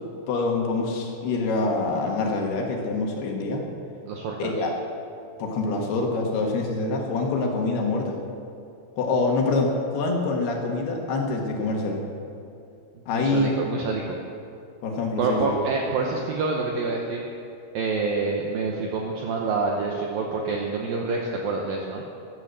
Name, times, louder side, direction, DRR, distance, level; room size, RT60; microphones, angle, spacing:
voice 1, 0.3-3.6 4.4-4.7 5.4-8.2 9.0-12.0 13.1-13.5 14.8-15.6, left 3 dB, 65° left, 1 dB, 3.1 m, -25 dB
voice 2, 4.1-4.7 13.1-14.2 15.2-17.2 17.7-22.0, right 4 dB, 80° right, 0 dB, 2.1 m, -27 dB
15.0 x 12.5 x 6.6 m, 2.5 s
omnidirectional pair, 5.6 m